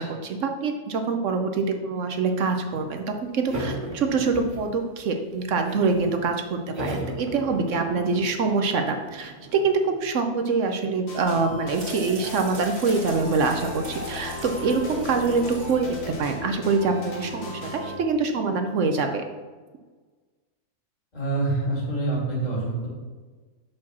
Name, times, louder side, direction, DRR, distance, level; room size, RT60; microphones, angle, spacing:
voice 1, 0.0-19.2, right 4 dB, 60° right, 5 dB, 1.0 m, -25 dB
sound 1, 3.5-5.0 5.3-6.1 6.7-10.0, right 1 dB, 35° right, 1.5 m, -36 dB
sound 2, 11.1-18.0, left 1 dB, 60° left, 1.6 m, -37 dB
sound 3, 11.2-16.8, right 1 dB, 85° right, 2.4 m, -41 dB
voice 2, 21.1-22.9, right 2 dB, 30° left, -5 dB, 2.1 m, -26 dB
6.6 x 4.5 x 5.9 m, 1.3 s
omnidirectional pair, 1.6 m